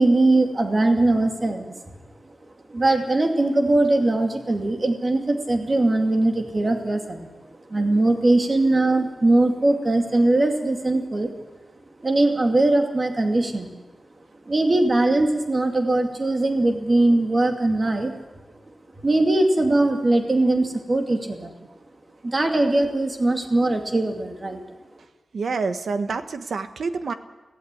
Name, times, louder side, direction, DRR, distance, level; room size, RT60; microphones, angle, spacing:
voice 1, 0.0-1.8 2.7-7.3 7.5-11.3 12.0-13.7 14.5-18.1 19.0-21.5 22.2-24.6, right 2 dB, 35° right, 4 dB, 2.4 m, -21 dB
voice 2, 25.3-27.1, right 4 dB, 85° right, 9 dB, 1.3 m, -27 dB
16.5 x 16.5 x 9.9 m, 1.1 s
wide cardioid pair, 140°, 0 cm